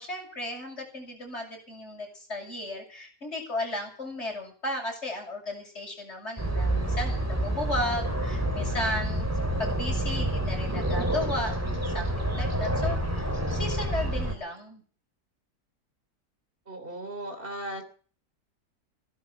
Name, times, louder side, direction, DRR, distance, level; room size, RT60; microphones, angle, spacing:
voice 1, 0.0-9.3 9.6-14.8, left 1 dB, 40° left, 0 dB, 7.4 m, -35 dB
sound 1, 6.4-14.3, right 1 dB, 10° right, 2.6 m, -28 dB
voice 2, 16.7-17.8, right 1 dB, 30° right, 6 dB, 3.6 m, -37 dB
15.5 x 12.0 x 7.2 m, 0.43 s
omnidirectional pair, 1.8 m